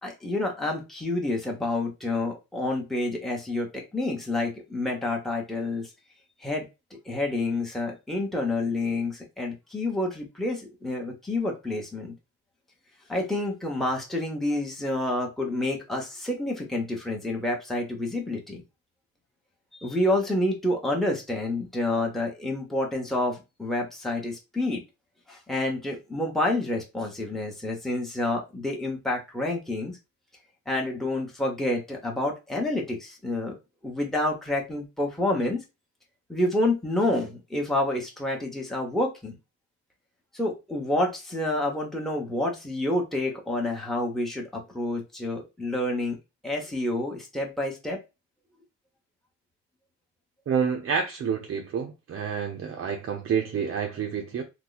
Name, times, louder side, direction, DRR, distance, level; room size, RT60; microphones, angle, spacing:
voice 1, 0.0-5.9 6.4-6.7 7.0-12.1 13.1-18.6 19.8-24.8 25.3-30.0 30.7-33.6 33.8-35.6 36.3-39.4 40.3-46.2 46.4-48.0, left 1 dB, ahead, 1.0 m, -28 dB
voice 2, 50.5-54.4, right 6 dB, 45° right, 0.6 m, -28 dB
2.8 x 2.2 x 4.0 m
cardioid pair, 90°, 30 cm